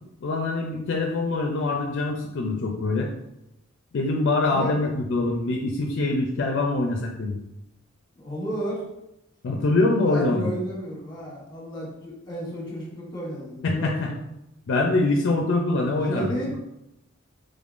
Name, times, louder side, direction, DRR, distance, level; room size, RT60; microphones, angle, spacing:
voice 1, 0.2-3.1 3.9-7.4 9.4-10.5 13.6-14.1 14.7-16.6, left 2 dB, 60° left, 1 dB, 0.4 m, -24 dB
voice 2, 8.2-8.8 10.0-13.9 16.0-16.6, right 1 dB, 20° left, -4 dB, 1.1 m, -32 dB
3.6 x 3.5 x 2.5 m, 0.88 s
head